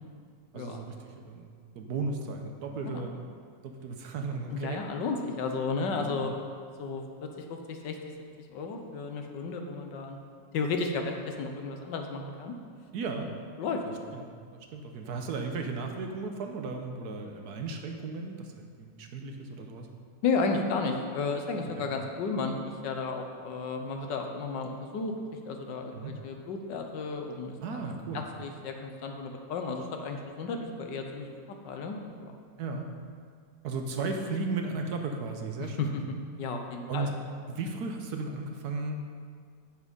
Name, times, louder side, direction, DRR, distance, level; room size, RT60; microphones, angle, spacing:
voice 1, 0.5-1.5 1.7-3.1 3.6-4.8 5.8-6.3 12.9-13.3 14.1-19.9 21.8-21.9 25.9-26.2 27.6-28.2 32.6-32.9 33.6-36.0 36.9-37.1 37.5-39.0, right 3 dB, 65° right, 4 dB, 1.2 m, -35 dB
voice 2, 4.5-6.3 6.8-8.0 8.5-10.2 10.5-12.5 13.6-13.8 20.2-22.5 22.8-25.1 25.4-27.5 28.1-31.3 31.6-32.3 35.6-36.0 36.4-37.1, left 4 dB, 80° left, 4 dB, 1.5 m, -33 dB
8.4 x 7.4 x 5.3 m, 2.1 s
omnidirectional pair, 1.9 m